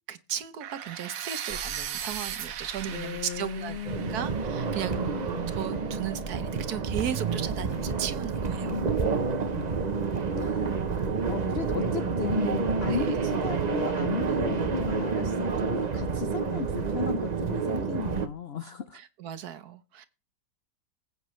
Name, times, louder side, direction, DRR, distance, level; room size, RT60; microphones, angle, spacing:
voice 1, 0.1-3.8 4.1-5.2 5.5-8.8 12.9-13.1 19.2-20.1, right 9 dB, 65° right, 1.3 m, -36 dB
sound 1, 0.6-6.5, right 9 dB, 80° right, 1.6 m, -39 dB
sound 2, 1.5-17.3, right 2 dB, 40° left, 2.4 m, -48 dB
voice 2, 2.9-4.3 4.9-5.5 8.6-8.9 9.4-9.8 10.3-10.8 11.3-19.0, left 7 dB, 70° left, 0.5 m, -35 dB
sound 3, 3.8-18.3, right 5 dB, 50° right, 0.5 m, -29 dB
21.0 x 8.1 x 3.2 m
omnidirectional pair, 1.9 m